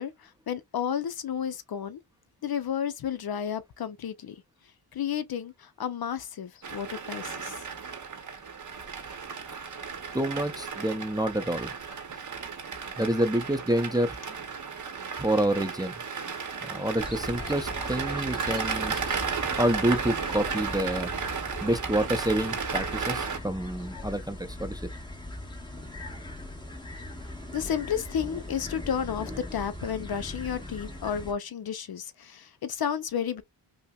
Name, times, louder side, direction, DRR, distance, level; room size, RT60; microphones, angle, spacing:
voice 1, 0.0-2.0 2.4-4.4 4.9-7.6 16.5-16.6 27.5-33.4, left 8 dB, 55° left, 0.6 m, -32 dB
sound 1, 6.6-23.4, right 6 dB, 40° right, 0.8 m, -34 dB
voice 2, 10.1-11.7 13.0-14.2 15.2-16.0 16.6-19.0 19.6-21.1 21.6-24.9, right 1 dB, 10° right, 0.5 m, -28 dB
Near Esbjerg, 17.0-31.3, left 1 dB, 10° left, 1.2 m, -40 dB
5.4 x 2.1 x 2.3 m
cardioid pair, 80°, 45 cm